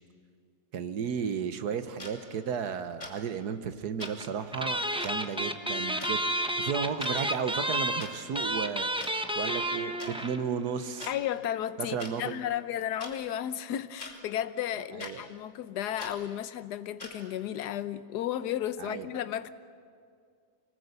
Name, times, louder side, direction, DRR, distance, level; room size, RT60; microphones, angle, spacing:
voice 1, 0.7-8.9 9.3-11.1 11.8-12.4 14.9-15.2 18.8-19.1, right 7 dB, 65° right, 1.5 m, -34 dB
sound 1, 2.0-2.1 3.0-3.2 4.0-4.1 5.0-5.1 6.0-6.1 6.9-7.1 8.0-8.1 9.0-9.1 10.0-10.1 11.0-11.1 12.0-12.1 13.0-13.1 14.0-14.1 15.0-15.1 16.0-16.1 17.0-17.1, left 2 dB, 30° left, 2.8 m, -41 dB
sound 2, 4.0-4.2 4.5-10.4 10.7-10.8 10.9-11.1, right 1 dB, 10° right, 0.3 m, -31 dB
voice 2, 11.1-19.5, left 11 dB, 70° left, 1.3 m, -33 dB
25.0 x 19.0 x 8.1 m
omnidirectional pair, 1.9 m